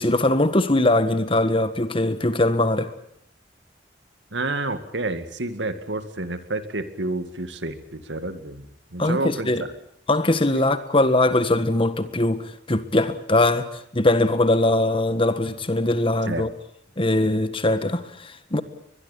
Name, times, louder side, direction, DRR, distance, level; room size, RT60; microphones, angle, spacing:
voice 1, 0.0-2.9 9.0-9.6 10.1-13.7 13.9-16.5 17.0-18.6, left 2 dB, 30° left, 1.7 m, -21 dB
voice 2, 4.3-8.6 8.9-9.5 10.5-10.6 16.3-16.5, right 2 dB, 85° right, 2.1 m, -29 dB
22.5 x 22.0 x 8.6 m
head